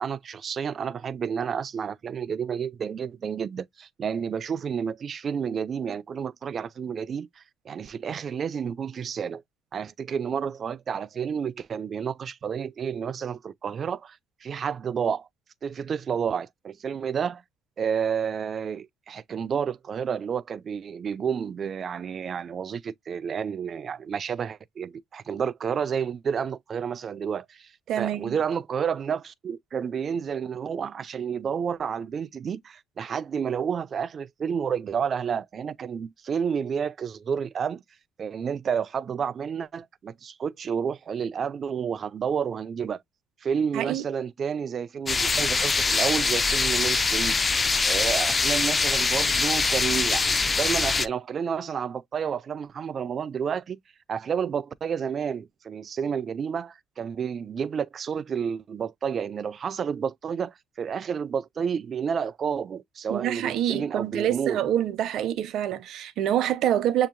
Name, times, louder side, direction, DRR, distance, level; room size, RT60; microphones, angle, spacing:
voice 1, 0.0-9.4 9.7-15.3 15.6-17.4 17.8-27.7 28.0-37.8 38.2-43.0 43.4-53.8 54.1-64.6, right 7 dB, 45° right, 0.4 m, -30 dB
voice 2, 27.9-28.4 43.7-44.0 63.1-67.1, right 11 dB, 70° right, 0.7 m, -26 dB
sound 1, 45.1-51.1, left 4 dB, 25° left, 0.3 m, -23 dB
6.8 x 2.8 x 2.5 m
cardioid pair, 110°, 0 cm